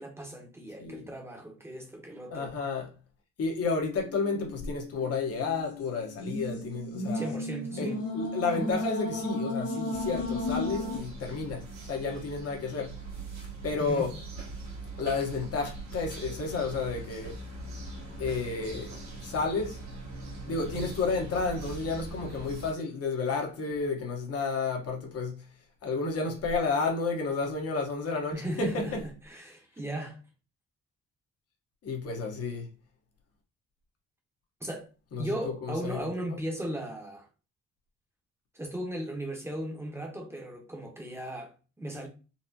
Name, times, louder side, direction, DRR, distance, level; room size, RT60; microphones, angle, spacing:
voice 1, 0.0-2.5 7.1-8.0 13.8-14.1 28.3-30.2 34.6-34.9 35.2-37.3 38.5-42.1, right 1 dB, 10° right, 0.9 m, -37 dB
voice 2, 2.3-2.9 3.4-7.4 7.8-13.0 13.6-14.1 15.0-17.4 18.2-19.8 20.4-25.5 25.8-29.0 31.8-32.7 35.1-36.4, left 4 dB, 55° left, 1.1 m, -31 dB
sound 1, 3.8-11.0, left 2 dB, 80° left, 1.5 m, -34 dB
sound 2, 9.9-22.7, right 2 dB, 65° right, 1.5 m, -42 dB
4.1 x 2.1 x 2.7 m
cardioid pair, 90°, 30 cm